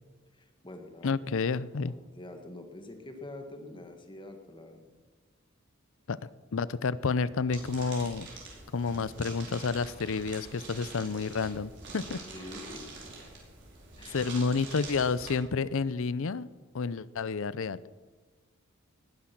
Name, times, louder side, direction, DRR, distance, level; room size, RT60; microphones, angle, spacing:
voice 1, 0.3-1.2 1.8-4.8 12.3-13.1 14.0-14.2, left 2 dB, 25° left, 5 dB, 1.8 m, -46 dB
voice 2, 1.0-1.9 6.1-6.2 6.5-8.3 8.7-12.2 14.1-16.5 16.7-17.8, left 4 dB, 65° left, 18 dB, 0.6 m, -30 dB
sound 1, 7.5-15.3, right 3 dB, 60° right, 4.7 m, -45 dB
19.0 x 10.5 x 6.0 m, 1.3 s
head